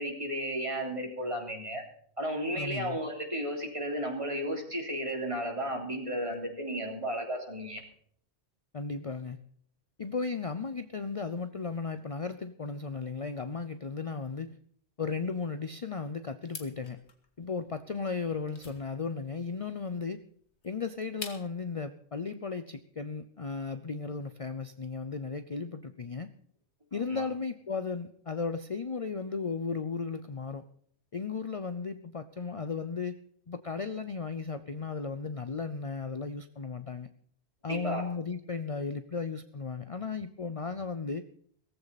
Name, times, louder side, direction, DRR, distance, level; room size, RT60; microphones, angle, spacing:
voice 1, 0.0-1.8 2.2-7.8 27.1-27.2 37.7-38.0, equal, 30° right, 1 dB, 3.6 m, -33 dB
voice 2, 2.5-3.0 8.7-9.4 10.0-14.6 15.0-17.0 17.4-20.2 20.6-26.3 26.9-30.6 31.1-33.2 33.5-37.1 37.6-41.2, left 4 dB, 35° left, 10 dB, 0.7 m, -35 dB
sound 1, 16.4-21.7, left 4 dB, 85° left, 2.2 m, -48 dB
18.0 x 15.0 x 4.2 m, 0.62 s
omnidirectional pair, 1.1 m